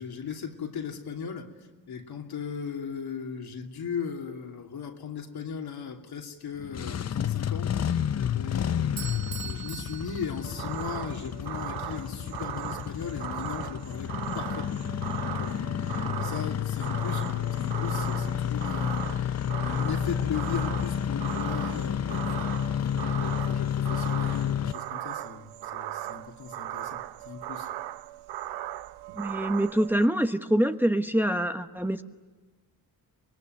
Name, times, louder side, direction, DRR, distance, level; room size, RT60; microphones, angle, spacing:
voice 1, 0.0-1.5 1.9-7.7 8.1-27.7, left 6 dB, 70° left, 2 dB, 2.9 m, -38 dB
Engine starting, 6.6-24.7, left 9 dB, 40° left, 0.7 m, -30 dB
Bell / Doorbell, 9.0-11.1, right 9 dB, 70° right, 1.1 m, -42 dB
sound 1, 10.4-30.1, right 13 dB, 90° right, 0.7 m, -38 dB
voice 2, 29.1-32.0, right 1 dB, 5° right, 7 dB, 1.1 m, -25 dB
25.0 x 20.5 x 9.4 m, 1.3 s
cardioid pair, 70°, 39 cm